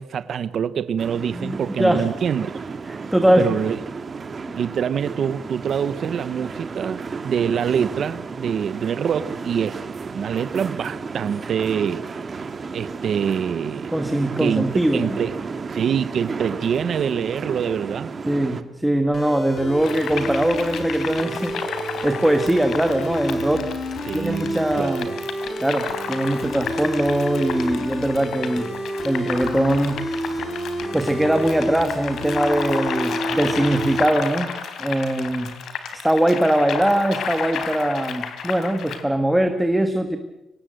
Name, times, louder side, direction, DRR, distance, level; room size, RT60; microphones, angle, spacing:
voice 1, 0.0-2.5 3.4-3.8 4.6-9.8 10.1-12.0 12.7-13.9 14.4-14.6 14.9-15.3 15.7-18.1 24.1-25.2, right 8 dB, 55° right, 0.7 m, -25 dB
sound 1, 1.0-18.6, right 4 dB, 30° right, 1.5 m, -33 dB
voice 2, 1.3-2.1 2.9-3.5 4.4-4.6 13.9-15.2 18.2-23.6 24.1-25.1 25.6-28.7 29.0-30.0 30.2-34.5 34.8-35.5 35.9-40.2, right 1 dB, 5° right, 1.5 m, -22 dB
sound 2, 19.1-34.0, right 1 dB, 40° left, 5.0 m, -29 dB
sound 3, 19.8-39.0, left 7 dB, 75° left, 3.4 m, -32 dB
24.5 x 19.0 x 7.7 m
wide cardioid pair, 170°, 0 cm